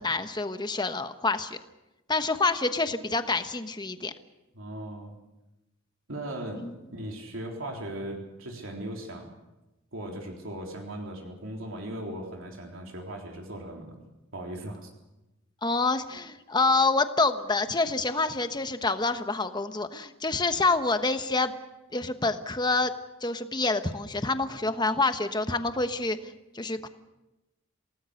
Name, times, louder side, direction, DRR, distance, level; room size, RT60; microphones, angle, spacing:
voice 1, 0.0-1.6 2.1-4.1 6.6-6.7 15.6-21.5 21.9-22.9 23.2-26.9, left 3 dB, 20° left, 9 dB, 1.2 m, -27 dB
voice 2, 4.5-5.1 6.1-9.3 9.9-14.0 14.3-14.9, right 1 dB, 70° right, 1 dB, 3.8 m, -38 dB
28.0 x 18.5 x 6.6 m, 0.98 s
head